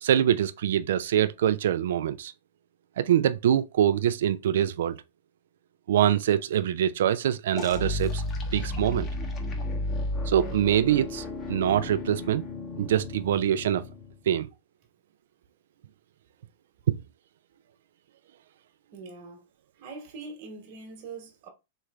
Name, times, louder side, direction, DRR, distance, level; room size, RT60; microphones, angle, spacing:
voice 1, 0.0-2.3 3.0-5.0 5.9-8.2 8.5-9.1 10.3-12.5 12.8-13.8 14.3-14.5 16.9-17.0, right 10 dB, 70° right, 0.3 m, -24 dB
sound 1, 7.6-14.2, left 2 dB, 30° left, 0.9 m, -33 dB
voice 2, 18.9-19.4 19.8-21.5, right 3 dB, 50° right, 1.2 m, -42 dB
3.2 x 3.1 x 2.4 m
hypercardioid pair, 115°, 0 cm